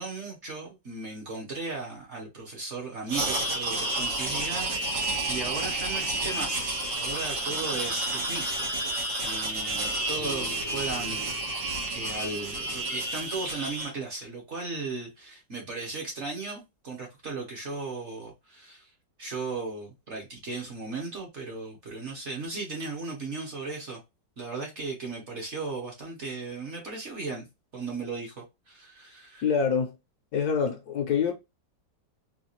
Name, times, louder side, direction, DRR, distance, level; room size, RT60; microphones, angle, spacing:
voice 1, 0.0-8.7 9.2-18.9 19.2-24.0 24.4-27.5 27.7-29.5, right 3 dB, 50° right, 1.1 m, -36 dB
sound 1, 3.1-13.9, right 2 dB, 85° right, 1.9 m, -30 dB
sound 2, 10.2-13.7, left 1 dB, 65° right, 2.1 m, -46 dB
voice 2, 29.4-29.9 30.3-31.3, left 6 dB, 70° left, 1.0 m, -25 dB
4.0 x 2.3 x 3.0 m
omnidirectional pair, 1.9 m